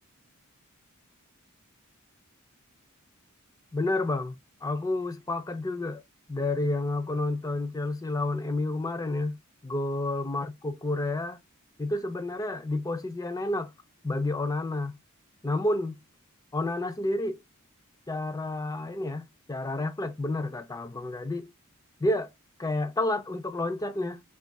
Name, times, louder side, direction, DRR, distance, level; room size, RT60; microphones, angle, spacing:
voice 1, 3.7-6.0 6.3-9.4 9.6-11.4 11.8-13.7 14.0-15.0 15.4-16.0 16.5-17.4 18.1-21.5 22.0-22.3 22.6-24.2, left 2 dB, 15° left, 0.4 m, -30 dB
2.9 x 2.4 x 4.0 m
head